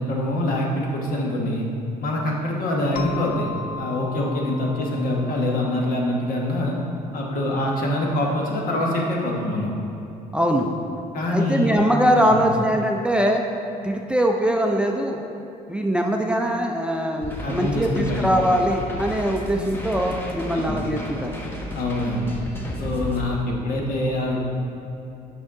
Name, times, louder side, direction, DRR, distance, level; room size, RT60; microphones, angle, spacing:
voice 1, 0.0-1.7 2.0-3.5 3.8-6.7 7.1-9.7 11.1-11.8 12.2-12.4 17.4-18.3 20.5-20.8 21.7-22.4 22.8-24.4, left 1 dB, 65° left, -1 dB, 1.2 m, -24 dB
sound 1, 3.0-7.4, left 5 dB, 80° left, 0.5 m, -38 dB
voice 2, 10.3-10.7 11.3-13.4 13.8-15.2 15.7-21.3, equal, 5° right, 2 dB, 0.4 m, -22 dB
sound 2, 17.2-23.2, equal, 15° left, 0.9 m, -33 dB
6.2 x 5.5 x 3.7 m, 2.8 s
cardioid pair, 95°, 16 cm